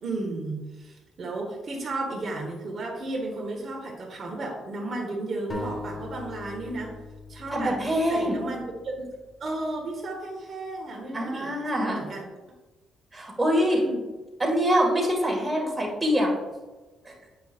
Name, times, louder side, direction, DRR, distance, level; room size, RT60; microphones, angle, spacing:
voice 1, 0.0-7.0 7.3-7.8 8.1-9.1 9.4-12.2 13.6-14.0, right 2 dB, 50° right, -1 dB, 1.2 m, -33 dB
sound 1, 5.5-9.1, left 2 dB, 30° left, 1.4 m, -39 dB
voice 2, 7.5-8.4 11.1-12.0 13.1-13.9 14.4-16.3 17.1-17.2, equal, 10° right, -3 dB, 1.9 m, -24 dB
8.1 x 5.4 x 2.5 m, 1.2 s
cardioid pair, 90°, 0 cm